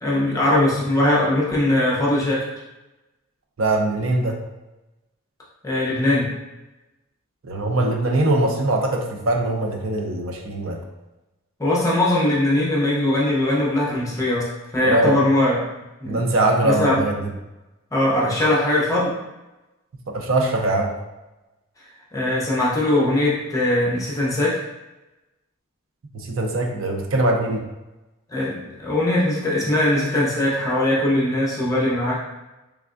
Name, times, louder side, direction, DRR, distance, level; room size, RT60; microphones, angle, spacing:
voice 1, 0.0-2.5 5.6-6.3 11.6-15.6 16.0-16.3 16.6-17.0 17.9-19.2 22.1-24.6 28.3-32.2, left 1 dB, 15° left, -5 dB, 0.7 m, -20 dB
voice 2, 3.6-4.4 7.4-10.8 14.8-15.2 16.0-17.3 20.1-20.9 26.1-27.6, right 2 dB, 70° right, 2 dB, 0.6 m, -22 dB
3.5 x 3.3 x 2.5 m, 1.0 s
head